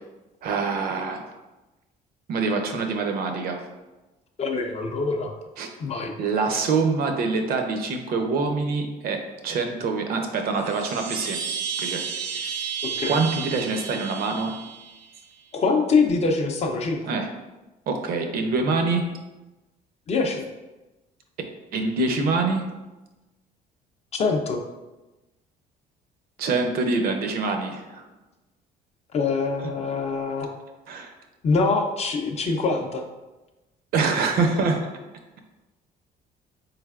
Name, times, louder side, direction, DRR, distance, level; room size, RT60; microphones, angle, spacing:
voice 1, 0.4-1.2 2.3-3.6 5.6-5.7 6.2-11.4 11.8-12.0 12.3-12.5 13.1-14.6 17.1-17.3 17.9-19.1 21.7-22.7 26.4-28.0 30.9-31.1 33.9-34.9, right 4 dB, 60° right, 5 dB, 0.6 m, -25 dB
voice 2, 4.4-5.3 5.8-6.1 12.8-13.2 15.5-17.0 20.1-20.4 24.1-24.6 29.1-30.5 31.4-33.0, left 4 dB, 40° left, 4 dB, 0.5 m, -24 dB
Chime, 10.5-15.2, right 7 dB, 90° right, 0.9 m, -32 dB
4.0 x 3.2 x 2.4 m, 1.1 s
cardioid pair, 110°, 17 cm